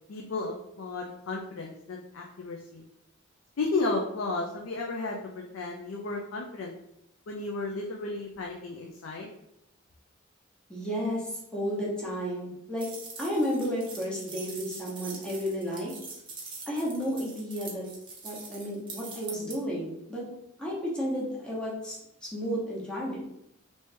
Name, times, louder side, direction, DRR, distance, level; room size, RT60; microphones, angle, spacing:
voice 1, 0.1-2.8 3.6-6.7 7.3-9.3, left 3 dB, 85° left, 0 dB, 0.5 m, -33 dB
voice 2, 10.7-12.9 13.2-15.9 16.7-17.8 18.2-20.2 20.6-22.0 22.3-23.2, equal, 5° left, -6 dB, 1.0 m, -32 dB
sound 1, 12.8-19.6, right 4 dB, 25° right, 0.7 m, -43 dB
3.1 x 2.7 x 3.3 m, 0.81 s
head